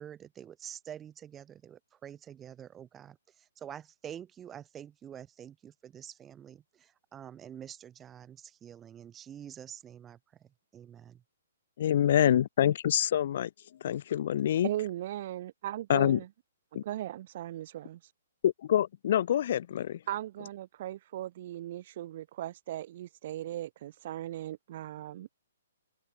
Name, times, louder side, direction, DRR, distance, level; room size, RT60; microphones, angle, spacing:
voice 1, 0.0-11.2, right 9 dB, 10° right, 4.5 m, -47 dB
voice 2, 11.8-13.5 13.8-14.7 15.9-16.2 16.7-16.8 18.4-20.0, left 10 dB, 40° left, 3.8 m, -26 dB
voice 3, 14.6-16.3 16.8-18.0 20.1-25.3, right 13 dB, 30° right, 5.2 m, -38 dB
open air
hypercardioid pair, 180°, 0 cm